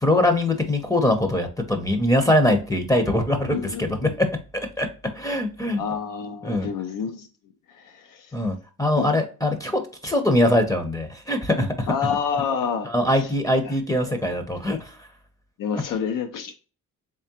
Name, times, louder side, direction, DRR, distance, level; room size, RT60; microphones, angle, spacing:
voice 1, 0.0-4.3 4.5-4.9 5.1-5.8 6.4-6.7 8.3-11.9 12.8-15.0 15.7-15.8, left 1 dB, 10° left, 0.7 m, -22 dB
voice 2, 3.5-4.1 5.8-7.3 7.7-8.3 9.0-9.1 11.9-13.3 13.6-13.7 14.1-14.2 15.6-16.5, left 6 dB, 70° left, 0.6 m, -28 dB
3.6 x 3.2 x 2.8 m
cardioid pair, 90°, 33 cm